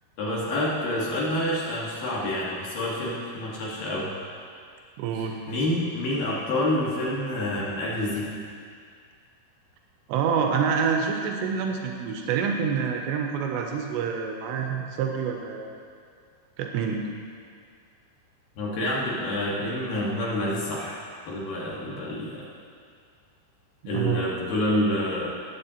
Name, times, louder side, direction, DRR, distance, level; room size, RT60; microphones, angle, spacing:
voice 1, 0.2-4.1 5.1-8.3 18.6-21.0 21.3-22.4 23.9-25.3, left 1 dB, 60° left, -5 dB, 2.5 m, -28 dB
voice 2, 5.0-5.4 10.1-15.7 16.6-17.1 23.8-24.3, right 6 dB, 90° right, 2 dB, 2.5 m, -27 dB
17.5 x 8.1 x 2.9 m, 2.2 s
omnidirectional pair, 5.7 m